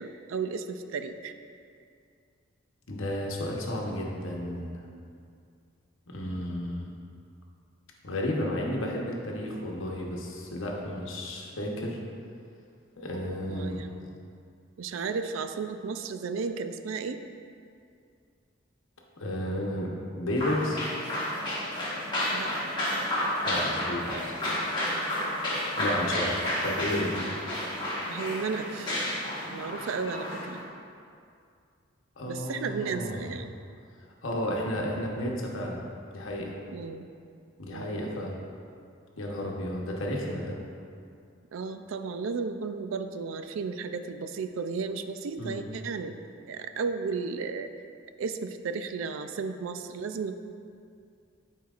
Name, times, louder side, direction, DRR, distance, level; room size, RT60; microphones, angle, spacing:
voice 1, 0.0-1.3 13.2-14.0 14.8-17.2 22.3-22.5 24.1-24.3 28.1-29.0 29.5-30.6 32.3-33.5 36.7-37.1 37.7-38.0 41.5-46.1 46.5-47.7 48.2-50.4, right 5 dB, 80° right, 9 dB, 0.4 m, -34 dB
voice 2, 2.9-4.8 6.1-6.9 8.0-12.0 13.0-13.8 19.2-20.8 23.4-24.4 25.8-27.3 32.2-33.3 34.2-35.8 36.1-36.6 37.6-38.4 39.2-40.6 45.4-45.7, left 1 dB, 80° left, -1 dB, 1.0 m, -32 dB
sound 1, 20.4-30.6, left 1 dB, 20° left, 1.5 m, -31 dB
11.0 x 4.5 x 2.4 m, 2.4 s
head